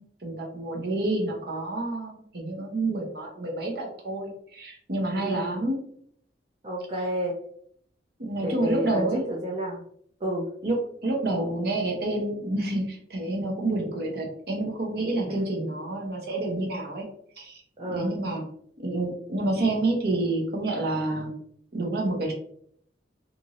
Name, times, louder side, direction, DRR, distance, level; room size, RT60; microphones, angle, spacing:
voice 1, 0.0-5.8 8.2-9.2 10.6-10.8 11.0-17.0 17.4-17.6 17.9-18.4 18.8-21.3 21.7-22.3, right 2 dB, 55° right, 0 dB, 0.8 m, -28 dB
voice 2, 5.2-5.5 6.6-7.4 8.4-9.8 10.2-10.5 17.8-18.2, equal, 30° right, -3 dB, 0.4 m, -30 dB
2.6 x 2.5 x 2.9 m, 0.65 s
head